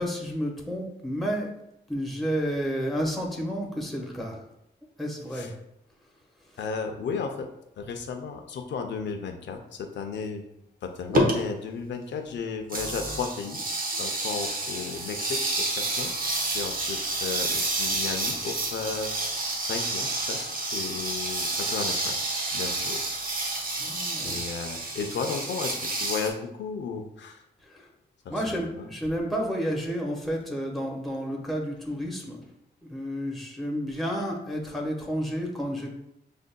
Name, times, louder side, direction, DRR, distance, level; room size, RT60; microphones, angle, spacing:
voice 1, 0.0-1.5 1.9-4.5 5.0-5.5 6.4-6.6 23.8-24.4 27.6-27.9 28.3-32.4 32.9-35.9, equal, ahead, -2 dB, 1.2 m, -31 dB
voice 2, 6.6-7.5 7.8-10.5 10.8-13.6 14.0-16.1 16.5-19.3 19.6-22.2 22.5-23.0 23.7-23.8 24.2-27.4 28.2-28.9, left 5 dB, 85° left, 4 dB, 0.5 m, -34 dB
sound 1, 11.1-11.3 12.7-26.3, right 2 dB, 50° right, 0.9 m, -29 dB
7.2 x 2.6 x 2.2 m, 0.81 s
cardioid pair, 85°, 18 cm